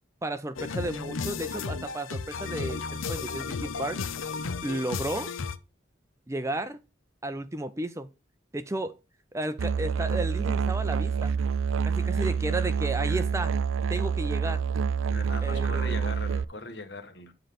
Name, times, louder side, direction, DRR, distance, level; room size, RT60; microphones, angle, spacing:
voice 1, 0.2-4.0 4.6-5.3 6.3-6.8 7.2-8.1 8.5-9.0 9.3-11.3 11.8-13.6 13.9-14.6 15.4-16.0, right 1 dB, 15° right, 0.5 m, -33 dB
sound 1, 0.6-5.6, left 5 dB, 90° left, 0.7 m, -34 dB
Musical instrument, 9.6-16.4, right 6 dB, 80° right, 0.4 m, -27 dB
voice 2, 12.0-12.4 15.1-17.3, left 2 dB, 55° left, 1.4 m, -40 dB
9.2 x 3.9 x 6.8 m
head